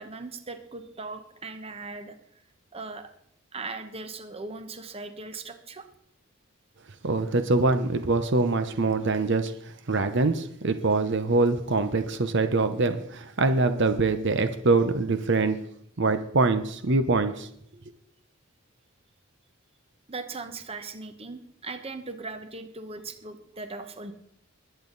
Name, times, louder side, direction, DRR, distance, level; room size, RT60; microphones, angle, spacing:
voice 1, 0.0-2.2 2.7-3.1 3.5-5.9 20.1-24.1, right 3 dB, 30° right, 8 dB, 1.1 m, -39 dB
voice 2, 7.0-15.6 16.0-17.5, right 3 dB, 55° right, 9 dB, 0.8 m, -24 dB
20.5 x 9.1 x 4.0 m, 0.69 s
head